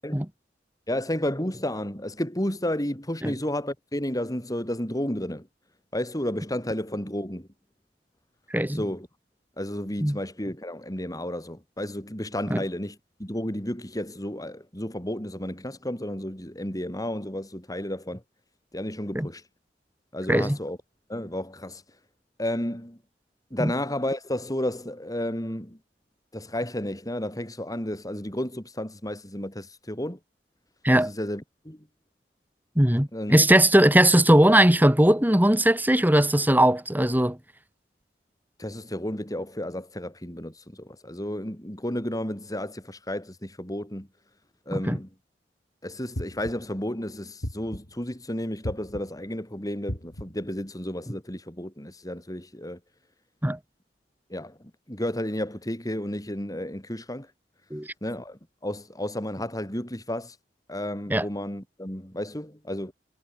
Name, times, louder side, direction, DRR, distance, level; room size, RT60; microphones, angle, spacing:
voice 1, 0.9-5.5 5.9-7.5 8.7-9.1 9.6-18.2 18.7-19.4 20.1-20.8 21.1-21.8 22.4-23.0 23.5-25.8 26.3-30.2 30.9-31.9 33.1-33.3 38.6-44.1 44.7-45.1 45.8-52.8 54.3-57.3 58.0-60.4 60.7-62.9, left 1 dB, 20° left, 6.4 m, -32 dB
voice 2, 8.5-8.8 10.0-10.2 12.5-12.6 19.1-19.3 20.3-20.6 23.6-23.7 30.8-31.1 32.8-37.4 44.9-45.0 53.4-53.6 57.7-57.9 61.1-61.3, right 1 dB, 10° right, 2.9 m, -19 dB
sound 1, 46.1-46.8 47.4-48.1 48.6-49.3 49.9-50.5, equal, 85° left, 6.4 m, -36 dB
head